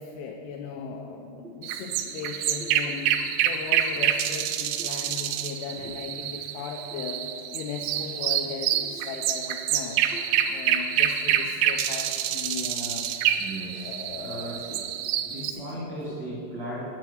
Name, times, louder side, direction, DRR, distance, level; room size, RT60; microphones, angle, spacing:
voice 1, 0.0-7.2 7.5-10.0 10.5-13.2 13.7-14.6 15.3-16.2, left 5 dB, 90° left, 3 dB, 2.2 m, -37 dB
sound 1, 1.6-15.5, right 10 dB, 80° right, 2.5 m, -27 dB
voice 2, 3.7-4.0 4.8-4.9 5.5-5.9 8.7-9.0 10.1-10.5 11.3-11.7 13.4-14.8 15.2-16.9, right 1 dB, 60° right, -8 dB, 1.1 m, -39 dB
9.0 x 5.7 x 7.7 m, 2.7 s
omnidirectional pair, 5.2 m